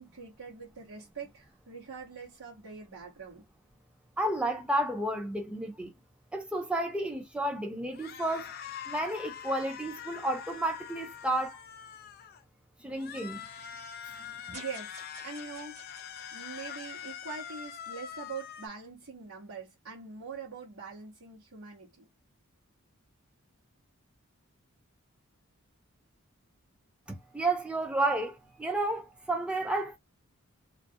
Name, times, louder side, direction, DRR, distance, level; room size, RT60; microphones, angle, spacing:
voice 1, 0.0-3.4 14.5-15.0 15.2-15.8 16.3-22.1, right 5 dB, 90° right, 1.0 m, -43 dB
voice 2, 4.2-5.9 6.3-8.5 8.9-11.6 12.8-13.4 14.5-14.6 27.1-30.0, right 1 dB, 5° right, 0.5 m, -31 dB
sound 1, 7.9-12.4 12.9-18.7, left 8 dB, 45° left, 0.4 m, -44 dB
sound 2, 14.5-17.8, right 2 dB, 30° right, 1.1 m, -52 dB
2.4 x 2.2 x 2.6 m
head